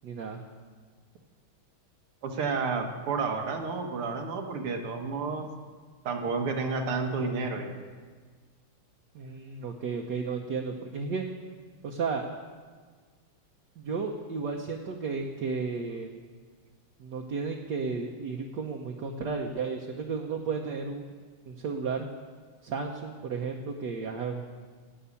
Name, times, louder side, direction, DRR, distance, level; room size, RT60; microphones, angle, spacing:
voice 1, 0.0-0.4 9.1-11.3 11.8-12.3 13.8-16.1 17.0-21.1 21.5-22.1 22.6-24.5, right 5 dB, 60° right, 1 dB, 1.3 m, -33 dB
voice 2, 2.2-5.5 6.1-7.7, right 4 dB, 85° right, 3 dB, 2.2 m, -31 dB
11.5 x 8.5 x 8.4 m, 1.5 s
omnidirectional pair, 2.4 m